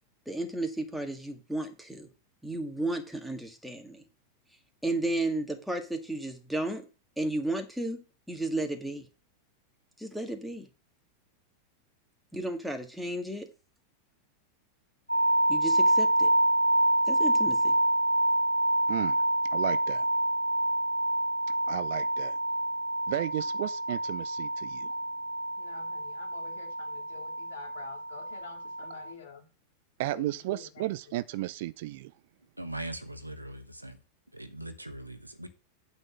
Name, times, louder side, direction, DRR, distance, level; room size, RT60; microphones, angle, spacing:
voice 1, 0.3-2.1 2.4-4.0 4.8-6.9 7.2-8.0 8.3-9.1 10.0-10.7 12.3-13.5 15.5-16.3 17.1-17.7, right 2 dB, ahead, 1.8 m, -33 dB
sound 1, 15.1-29.1, right 1 dB, 90° left, 0.7 m, -27 dB
voice 2, 18.9-19.2 19.5-20.0 21.7-22.4 23.1-24.9 30.0-32.1, right 16 dB, 50° right, 0.4 m, -34 dB
voice 3, 25.6-29.4 30.1-30.9, left 5 dB, 60° left, 2.2 m, -48 dB
voice 4, 32.6-34.0 34.3-35.5, right 1 dB, 85° right, 1.2 m, -40 dB
8.9 x 4.1 x 7.3 m
figure-of-eight pair, 90°, 0 cm